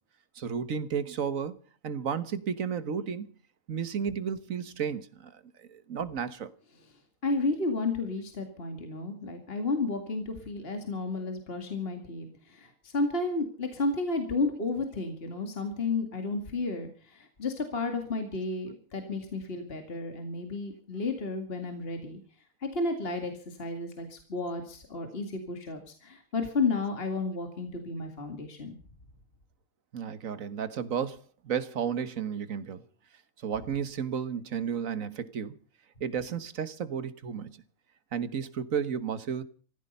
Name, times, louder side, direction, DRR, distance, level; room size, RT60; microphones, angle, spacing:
voice 1, 0.3-1.6 1.8-3.3 3.7-6.5 29.9-31.2 31.4-32.8 33.4-35.6 36.0-37.6 38.1-39.4, right 7 dB, 70° right, 1.6 m, -33 dB
voice 2, 7.2-22.2 22.6-28.7, left 3 dB, 45° left, 2.4 m, -32 dB
16.0 x 15.0 x 5.4 m
omnidirectional pair, 1.5 m